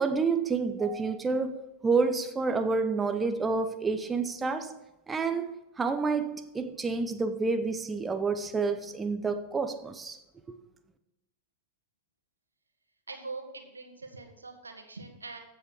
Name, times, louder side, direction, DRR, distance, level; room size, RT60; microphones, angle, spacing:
voice 1, 0.0-1.6 1.8-4.8 5.1-10.2, right 4 dB, 15° right, 0.7 m, -29 dB
voice 2, 13.1-15.4, right 3 dB, 80° right, 1.6 m, -43 dB
15.0 x 7.1 x 4.6 m
figure-of-eight pair, 90°, 0 cm